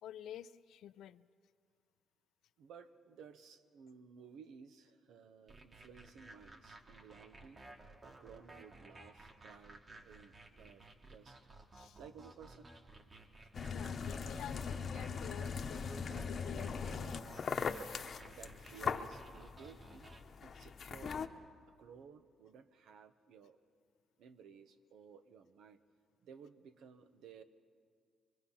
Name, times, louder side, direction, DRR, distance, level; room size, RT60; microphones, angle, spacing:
voice 1, 0.0-1.3 11.7-12.0 13.7-17.2, left 11 dB, 80° left, 14 dB, 0.6 m, -51 dB
voice 2, 2.6-7.6 8.0-11.4 12.0-12.7 18.3-21.4 21.8-23.6 24.2-25.8 26.2-27.4, right 6 dB, 80° right, 9 dB, 1.2 m, -56 dB
sound 1, 5.5-20.2, right 2 dB, 35° right, 1.9 m, -56 dB
sound 2, 13.5-21.3, left 5 dB, 50° left, 1.1 m, -40 dB
24.0 x 24.0 x 5.8 m, 2.1 s
cardioid pair, 90°, 0 cm